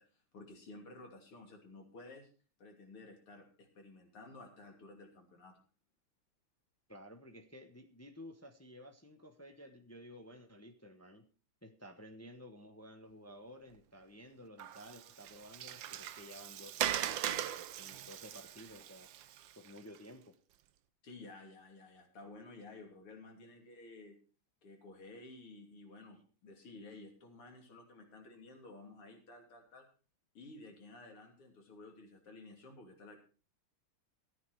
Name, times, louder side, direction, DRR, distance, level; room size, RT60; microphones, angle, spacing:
voice 1, 0.0-2.3 2.6-5.6 21.0-24.2 24.6-29.9 30.4-33.2, left 2 dB, 85° left, 2 dB, 3.7 m, -53 dB
voice 2, 6.9-11.3 11.6-19.1 19.5-20.3, equal, 20° left, 6 dB, 0.3 m, -53 dB
Water, 14.6-20.0, right 11 dB, 70° right, 1.4 m, -40 dB
14.0 x 9.5 x 4.7 m, 0.38 s
omnidirectional pair, 2.4 m